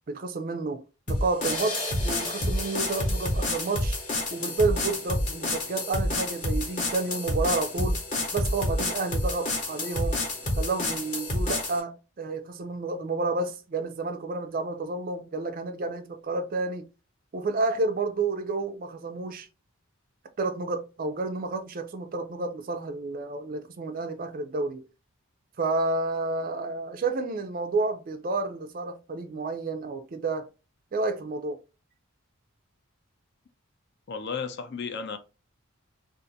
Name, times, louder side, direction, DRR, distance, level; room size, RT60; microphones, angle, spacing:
voice 1, 0.1-4.0 4.3-8.0 8.3-10.2 10.6-16.9 17.3-19.5 20.4-24.9 25.6-30.5 30.9-31.6, right 3 dB, 40° right, 0.4 m, -30 dB
sound 1, 1.1-11.8, left 1 dB, 35° left, 0.9 m, -29 dB
voice 2, 34.1-35.2, left 5 dB, 50° left, 0.5 m, -33 dB
2.6 x 2.5 x 3.9 m
head